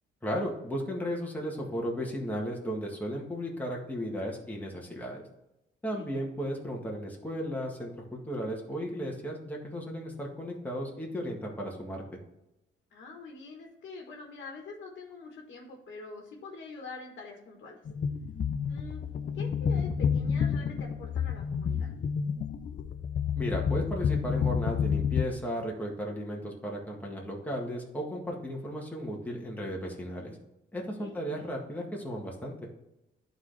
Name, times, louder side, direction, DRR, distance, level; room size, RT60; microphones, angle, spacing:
voice 1, 0.2-5.3 5.8-12.0 23.4-30.4 30.7-32.5, equal, 10° left, -2 dB, 1.7 m, -35 dB
voice 2, 12.9-17.8 18.7-19.0 19.3-21.9 31.0-31.2, left 4 dB, 60° left, 1 dB, 1.5 m, -45 dB
sound 1, 17.9-25.2, left 7 dB, 45° left, 0.6 m, -29 dB
11.0 x 4.0 x 3.4 m, 0.91 s
cardioid pair, 90°, 20 cm